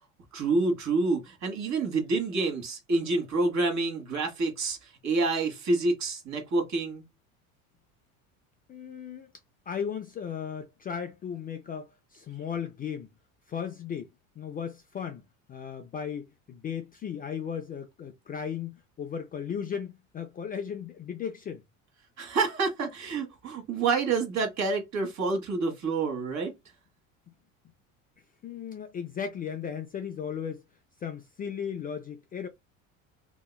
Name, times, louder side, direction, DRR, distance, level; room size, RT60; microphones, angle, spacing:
voice 1, 0.3-7.0 22.2-26.5, right 3 dB, 40° right, 1.3 m, -28 dB
voice 2, 8.7-9.3 9.7-13.1 13.5-14.1 14.4-15.2 15.5-21.6 28.4-30.7 31.0-32.5, left 7 dB, 20° left, 0.4 m, -36 dB
2.9 x 2.8 x 2.2 m
hypercardioid pair, 80°, 41 cm